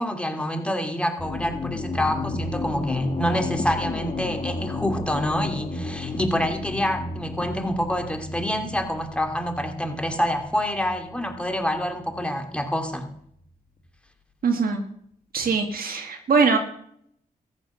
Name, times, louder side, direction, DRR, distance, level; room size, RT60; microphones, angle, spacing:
voice 1, 0.0-13.1, equal, 5° left, 4 dB, 2.7 m, -27 dB
sound 1, 1.2-12.7, left 2 dB, 50° left, 2.2 m, -33 dB
voice 2, 14.4-14.8 15.3-16.6, right 5 dB, 70° right, 3 dB, 1.7 m, -22 dB
14.0 x 9.6 x 6.3 m, 0.68 s
cardioid pair, 60°, 15 cm